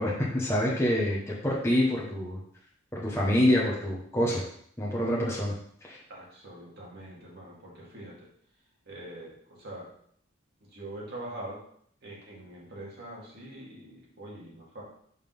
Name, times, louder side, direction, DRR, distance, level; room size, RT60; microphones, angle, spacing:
voice 1, 0.0-2.4 2.9-4.4 4.8-5.5 5.8-6.0, left 1 dB, 10° left, -5 dB, 1.1 m, -26 dB
voice 2, 6.1-8.3 8.9-9.9 10.7-11.6 12.0-14.8, right 1 dB, 50° right, -4 dB, 2.2 m, -43 dB
5.2 x 3.9 x 5.4 m, 0.63 s
head